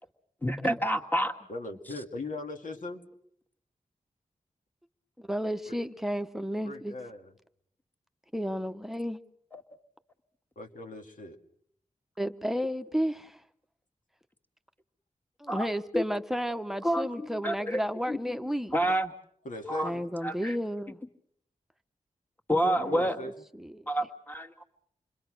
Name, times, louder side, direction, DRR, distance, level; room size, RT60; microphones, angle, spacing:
voice 1, 0.4-1.3 9.5-9.6 15.5-15.7 15.9-16.0 16.8-17.8 18.1-18.2 18.7-19.1 19.6-19.9 20.2-20.6 22.5-23.2 23.9-24.6, equal, 15° left, 4 dB, 2.1 m, -28 dB
voice 2, 1.5-3.0 5.7-5.8 6.6-7.3 10.6-11.4 19.4-19.9 22.8-23.3, left 2 dB, 75° left, 3 dB, 2.3 m, -39 dB
voice 3, 5.2-7.0 8.3-9.2 12.2-13.4 15.4-19.0 19.8-21.0 22.5-23.9, equal, ahead, 10 dB, 1.1 m, -33 dB
28.0 x 21.5 x 6.2 m, 0.68 s
cardioid pair, 50°, 14 cm